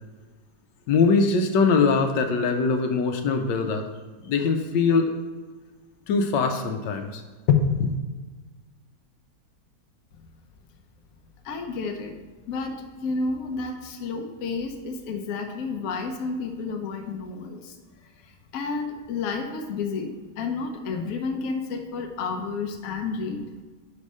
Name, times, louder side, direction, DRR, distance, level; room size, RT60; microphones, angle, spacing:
voice 1, 0.9-3.8 4.2-5.1 6.1-7.2 7.5-7.9, left 5 dB, 85° left, 5 dB, 1.3 m, -22 dB
voice 2, 11.4-12.2 12.5-17.7 18.2-23.6, left 4 dB, 60° left, 4 dB, 1.0 m, -31 dB
5.2 x 4.8 x 5.4 m, 1.3 s
omnidirectional pair, 1.9 m